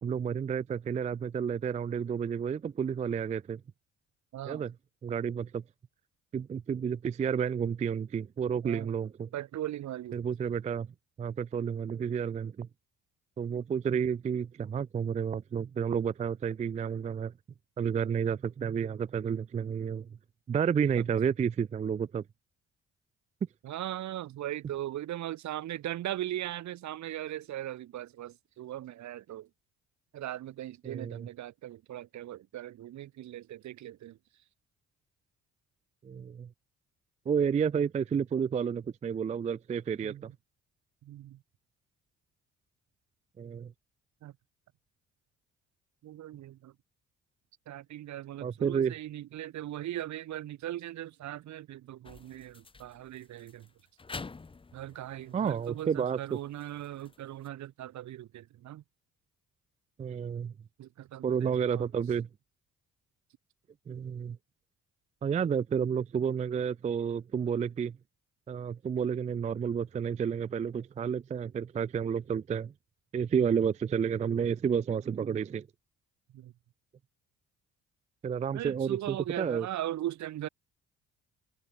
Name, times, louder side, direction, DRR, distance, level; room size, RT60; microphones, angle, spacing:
voice 1, 0.0-3.6 4.5-4.7 5.0-5.6 6.3-9.3 10.1-10.9 11.2-12.7 13.4-17.3 17.8-20.1 20.5-22.2 30.8-31.3 36.0-36.5 37.3-40.3 43.4-43.7 48.4-48.9 55.3-56.4 60.0-60.5 61.2-62.3 63.9-64.4 65.2-68.0 68.5-72.7 73.1-75.7 78.2-79.7, right 7 dB, 20° right, 0.3 m, -31 dB
voice 2, 4.3-4.7 8.6-8.9 9.3-10.2 21.0-21.1 23.6-29.5 30.1-34.2 37.8-37.9 40.0-40.3 41.0-41.4 44.2-44.3 46.0-46.7 47.7-53.7 54.7-58.8 60.8-62.0 73.3-73.5 76.3-76.5 78.5-80.5, right 13 dB, 55° right, 0.8 m, -39 dB
sound 1, 52.0-57.5, left 4 dB, 15° left, 0.6 m, -48 dB
hypercardioid pair, 55°, 34 cm